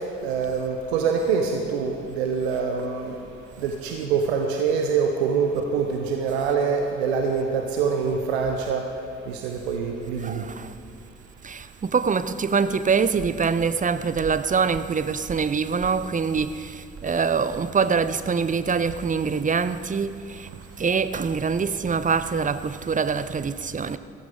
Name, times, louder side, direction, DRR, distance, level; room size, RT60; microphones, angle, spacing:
voice 1, 0.2-3.1 3.6-8.8 9.3-10.4, right 5 dB, 80° right, 0.9 m, -25 dB
voice 2, 10.2-10.7 11.4-20.5 20.8-24.0, right 5 dB, 25° right, 0.7 m, -24 dB
16.0 x 14.0 x 3.8 m
figure-of-eight pair, 40°, 32 cm